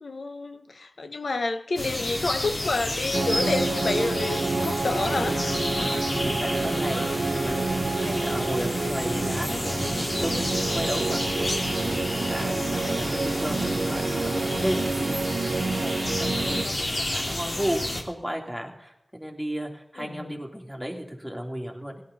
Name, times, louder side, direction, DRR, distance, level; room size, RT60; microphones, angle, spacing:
voice 1, 0.0-5.4 20.0-20.4, left 3 dB, 85° left, 9 dB, 1.1 m, -29 dB
sound 1, 1.8-18.0, left 1 dB, 60° left, 2.9 m, -30 dB
sound 2, 3.1-16.6, right 3 dB, 70° right, 0.6 m, -28 dB
voice 2, 6.0-7.1 7.3-11.2 11.5-15.2 15.5-22.0, equal, ahead, 1 dB, 3.2 m, -34 dB
17.0 x 12.0 x 4.2 m, 0.89 s
cardioid pair, 45°, 0 cm